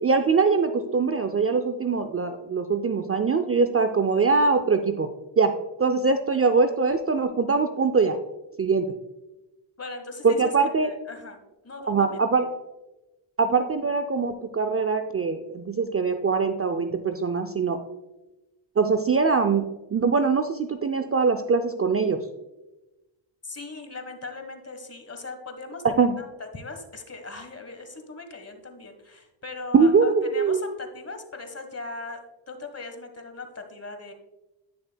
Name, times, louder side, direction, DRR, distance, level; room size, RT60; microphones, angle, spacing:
voice 1, 0.0-5.1 5.4-5.5 5.8-8.2 8.6-8.9 10.2-10.9 11.9-12.5 13.4-17.8 18.8-19.6 19.9-22.2 26.0-26.1 29.7-30.6, right 4 dB, 30° right, 8 dB, 0.5 m, -22 dB
voice 2, 9.8-11.4 11.6-12.5 23.4-34.1, left 3 dB, 30° left, 6 dB, 1.3 m, -39 dB
9.9 x 6.6 x 2.2 m, 1.0 s
cardioid pair, 60°, 50 cm